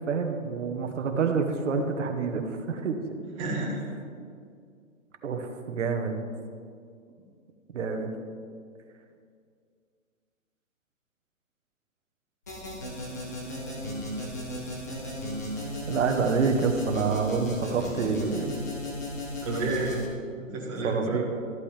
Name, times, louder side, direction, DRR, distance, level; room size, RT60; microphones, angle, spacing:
voice 1, 0.0-3.2 5.2-6.2 7.7-8.1 15.9-18.5 20.8-21.2, right 5 dB, 60° right, 5 dB, 1.3 m, -27 dB
voice 2, 3.4-3.9 19.4-19.9 20.4-21.2, right 3 dB, 25° right, -4 dB, 1.5 m, -30 dB
sound 1, 12.5-20.1, left 1 dB, 15° left, 0.6 m, -35 dB
13.5 x 8.4 x 3.4 m, 2.2 s
hypercardioid pair, 170°, 41 cm